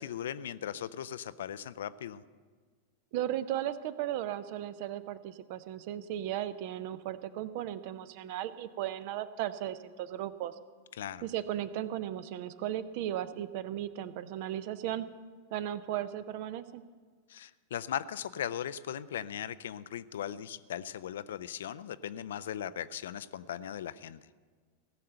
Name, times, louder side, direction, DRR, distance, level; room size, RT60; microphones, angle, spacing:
voice 1, 0.0-2.2 11.0-11.3 17.3-24.2, left 10 dB, 60° left, 16 dB, 0.4 m, -38 dB
voice 2, 3.1-10.6 11.2-15.1 15.5-16.8, right 12 dB, 50° right, 14 dB, 0.6 m, -36 dB
17.0 x 6.6 x 7.9 m, 1.5 s
figure-of-eight pair, 90°, 0 cm